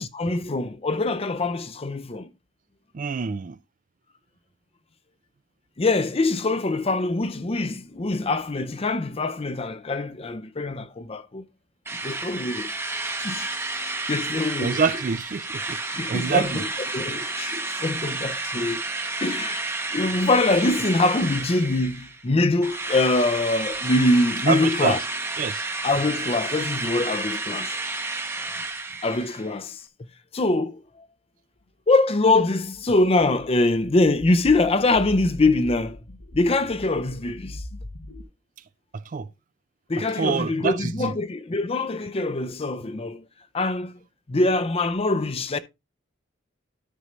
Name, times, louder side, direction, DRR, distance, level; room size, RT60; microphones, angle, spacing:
voice 1, 0.0-2.3 5.8-11.4 12.0-12.7 13.0-13.5 13.8-14.8 15.9-16.7 16.9-18.8 19.2-25.0 25.8-27.8 29.0-29.8 30.3-30.8 31.9-36.0 36.3-37.6 39.9-43.2 43.5-44.0 44.3-45.6, left 2 dB, 30° left, 0.6 m, -23 dB
voice 2, 2.9-3.6 14.6-15.8 16.1-16.7 24.5-25.0 25.4-25.6 38.9-39.3 40.1-41.1, right 5 dB, 45° right, 0.4 m, -26 dB
Drill, 11.9-22.2 22.6-29.5, right 3 dB, 15° right, 0.8 m, -31 dB
sound 1, 32.7-38.2, left 1 dB, 75° left, 1.1 m, -41 dB
12.5 x 5.3 x 3.1 m
head